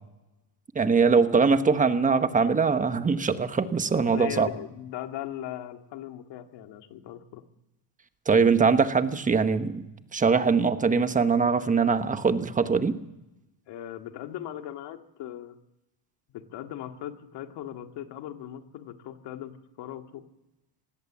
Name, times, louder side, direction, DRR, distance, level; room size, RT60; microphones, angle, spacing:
voice 1, 0.7-4.5 8.3-9.8 10.1-13.0, right 5 dB, 15° right, 10 dB, 1.2 m, -22 dB
voice 2, 3.9-7.4 13.7-15.6 16.3-20.3, left 11 dB, 65° left, 6 dB, 2.2 m, -39 dB
20.5 x 17.0 x 7.4 m, 0.93 s
cardioid pair, 135°, 45 cm